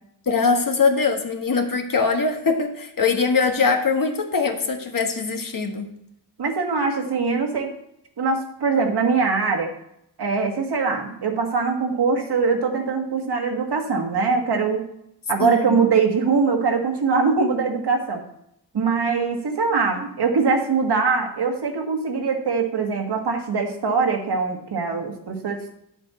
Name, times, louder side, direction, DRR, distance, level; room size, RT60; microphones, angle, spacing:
voice 1, 0.3-5.9 15.4-15.8, left 4 dB, 50° left, 4 dB, 1.4 m, -22 dB
voice 2, 6.4-7.7 8.2-9.7 10.2-14.8 15.3-18.2 18.7-25.7, right 5 dB, 60° right, 3 dB, 1.7 m, -22 dB
9.1 x 7.5 x 4.2 m, 0.76 s
cardioid pair, 85°, 44 cm